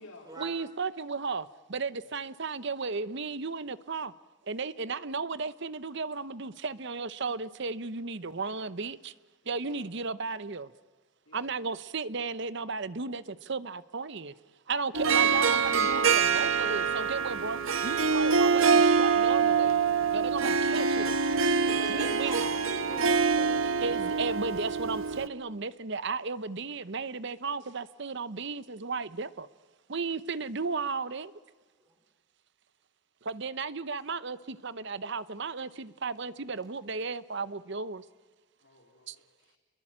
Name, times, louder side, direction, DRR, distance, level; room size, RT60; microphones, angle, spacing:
voice 1, 0.4-4.1 4.5-9.1 9.5-10.7 11.3-14.3 14.7-19.8 20.1-21.2 21.9-22.4 23.8-29.5 29.9-31.3 33.2-38.0 39.1-39.2, right 4 dB, 55° right, 16 dB, 0.8 m, -34 dB
voice 2, 9.4-9.9 11.3-11.5 38.6-39.6, left 2 dB, 65° left, 0 dB, 3.6 m, -54 dB
Harp, 14.9-25.3, right 5 dB, 70° right, 1.2 m, -25 dB
voice 3, 21.7-24.0 31.9-32.0, right 1 dB, 20° right, 2 dB, 5.2 m, -43 dB
27.0 x 22.5 x 8.8 m, 1.3 s
head